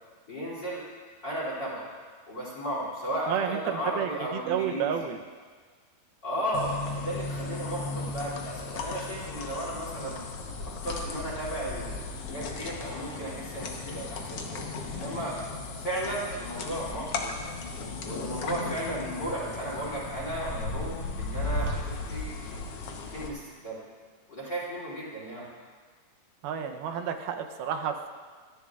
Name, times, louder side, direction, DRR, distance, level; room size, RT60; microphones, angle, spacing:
voice 1, 0.3-0.8 1.2-1.9 2.3-4.9 6.2-10.2 10.6-15.4 15.8-17.3 18.0-22.4 23.1-23.8 24.3-25.5, right 1 dB, 30° left, -6 dB, 3.3 m, -35 dB
voice 2, 3.3-5.2 26.4-28.1, right 8 dB, 85° right, 5 dB, 2.6 m, -31 dB
sound 1, 6.5-23.3, left 3 dB, 80° left, 1.3 m, -36 dB
27.0 x 10.5 x 2.4 m, 1.5 s
omnidirectional pair, 4.2 m